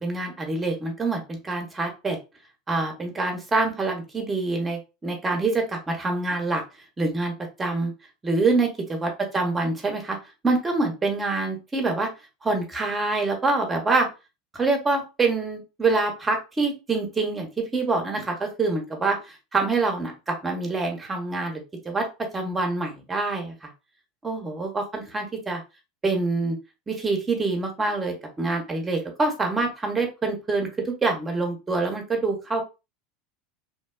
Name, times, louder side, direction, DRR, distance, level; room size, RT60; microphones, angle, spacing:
voice 1, 0.0-2.2 2.7-6.6 7.0-7.3 7.6-7.9 8.2-10.2 10.4-12.1 12.4-14.1 14.5-19.2 19.5-23.7 24.2-25.6 26.0-26.6 26.9-32.6, right 3 dB, 20° right, 3 dB, 0.9 m, -26 dB
3.0 x 2.2 x 2.2 m, 0.28 s
hypercardioid pair, 80°, 0 cm